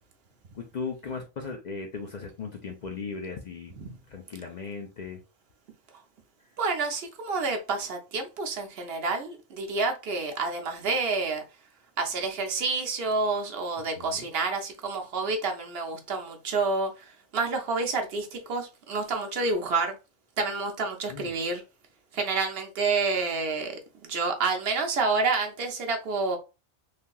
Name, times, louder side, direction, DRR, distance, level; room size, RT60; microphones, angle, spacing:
voice 1, 0.5-3.7 4.1-5.2 14.0-14.3 21.1-21.3, left 5 dB, 55° left, 0.5 m, -37 dB
voice 2, 6.6-11.4 12.0-19.9 20.4-21.6 22.1-26.4, right 4 dB, 65° right, 0.8 m, -29 dB
3.2 x 2.7 x 2.3 m
omnidirectional pair, 1.2 m